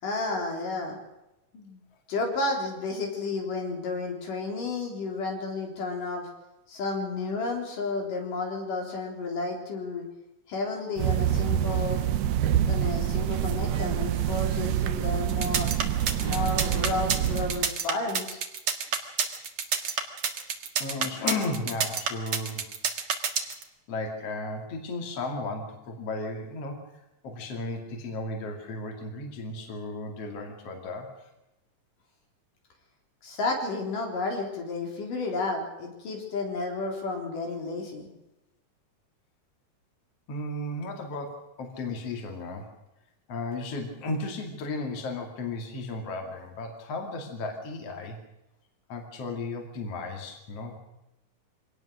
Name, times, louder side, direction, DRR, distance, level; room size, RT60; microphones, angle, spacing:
voice 1, 0.0-1.0 1.5-1.8 2.1-6.3 6.7-10.1 10.5-12.0 12.6-15.7 16.2-18.4 33.2-38.1, left 3 dB, 80° left, 1 dB, 5.4 m, -32 dB
sound 1, 11.0-17.7, right 10 dB, 80° right, 2.6 m, -26 dB
sound 2, 15.3-23.6, right 6 dB, 50° right, 2.3 m, -28 dB
voice 2, 20.8-22.7 23.9-26.8 27.2-31.1 40.3-42.7 43.3-48.2 48.9-50.7, left 2 dB, 50° left, 3 dB, 3.3 m, -34 dB
24.5 x 18.5 x 6.4 m, 0.95 s
omnidirectional pair, 3.7 m